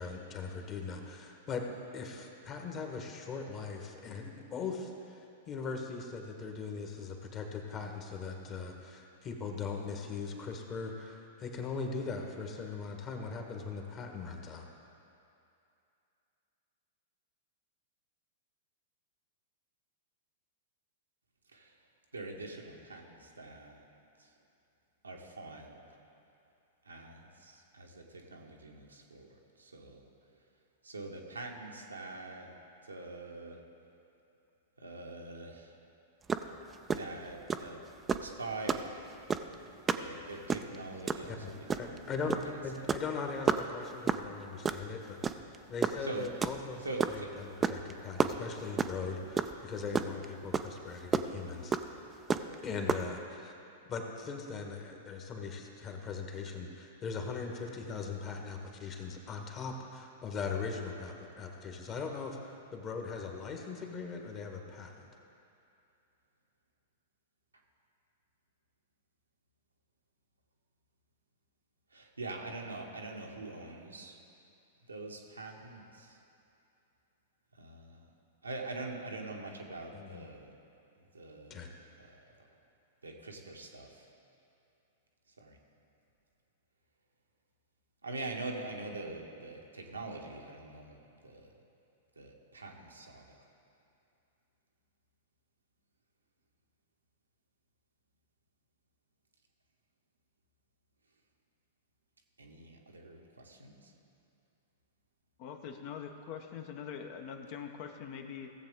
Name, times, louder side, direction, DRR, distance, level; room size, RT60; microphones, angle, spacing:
voice 1, 0.0-1.7 1.9-14.7 41.3-41.5 41.8-42.4 42.6-45.2 45.7-51.8 52.6-53.5 53.9-65.1 79.9-80.3 81.5-81.7, left 5 dB, 30° left, 3 dB, 1.5 m, -40 dB
voice 2, 22.1-23.8 24.2-24.3 25.0-25.8 26.8-29.3 29.6-30.1 30.8-32.5 32.8-33.6 34.8-35.7 36.9-37.8 38.1-39.0 39.9-42.0 46.0-46.3 46.8-47.3 71.9-74.2 74.9-76.2 77.5-78.1 78.4-80.5 81.0-81.7 82.0-82.5 83.0-84.0 85.4-85.6 88.0-91.5 92.2-93.4 102.4-103.9, right 2 dB, 90° right, 0 dB, 1.3 m, -44 dB
sound 1, 36.3-36.5 36.7-37.0 37.5-37.7 38.1-38.3 38.7-38.9 39.3-39.5 39.9-40.1 40.3-40.8 41.1-41.3 41.7-42.0 42.3-42.5 42.7-43.1 43.5-43.6 44.1-44.3 44.6-44.8 45.2-45.6 45.8-47.2 47.6-47.9 48.2-49.0 49.4-49.5 49.8-50.2 50.5-50.6 51.1-51.2 51.7-51.8 52.3-52.5 52.9-53.0, right 5 dB, 20° right, 0.4 m, -29 dB
voice 3, 105.4-108.5, left 7 dB, 50° left, 5 dB, 0.9 m, -43 dB
16.5 x 7.5 x 3.8 m, 2.7 s
hypercardioid pair, 105°, 0 cm